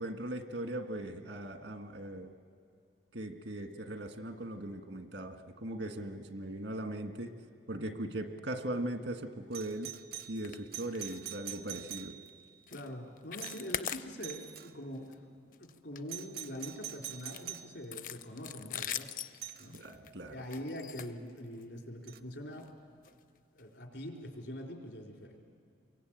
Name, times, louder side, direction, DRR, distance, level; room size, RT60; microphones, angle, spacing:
voice 1, 0.0-2.3 3.1-7.3 7.7-9.9 10.3-12.2 19.7-20.4, right 1 dB, 85° right, 6 dB, 1.7 m, -39 dB
Doorbell, 9.5-12.5 13.4-13.8 14.2-14.7 16.1-17.7 19.4-19.7 22.1-22.2, right 11 dB, 55° right, 0.6 m, -45 dB
sound 1, 10.4-10.6 10.9-11.2 11.5-11.7 12.1-12.3 12.7-12.9 13.2-14.6 14.9-15.1 15.5-16.6 17.2-21.8 22.5-22.7 23.0-23.1 23.6-23.7, left 9 dB, 50° left, 0.6 m, -42 dB
voice 2, 12.7-19.1 19.6-19.8 20.3-22.7 23.5-25.4, equal, 80° left, 1 dB, 3.9 m, -44 dB
28.5 x 23.0 x 9.0 m, 2.2 s
head